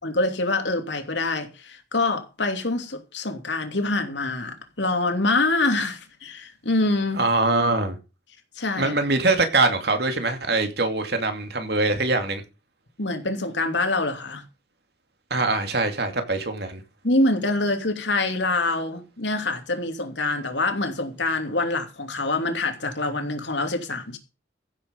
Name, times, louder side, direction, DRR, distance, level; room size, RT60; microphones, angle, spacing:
voice 1, 0.0-7.2 8.6-8.9 13.0-14.4 17.0-24.2, left 2 dB, 70° left, 2.8 m, -25 dB
voice 2, 7.2-8.0 8.8-12.4 15.3-16.8, right 2 dB, 60° right, 2.7 m, -23 dB
15.5 x 8.0 x 5.3 m
head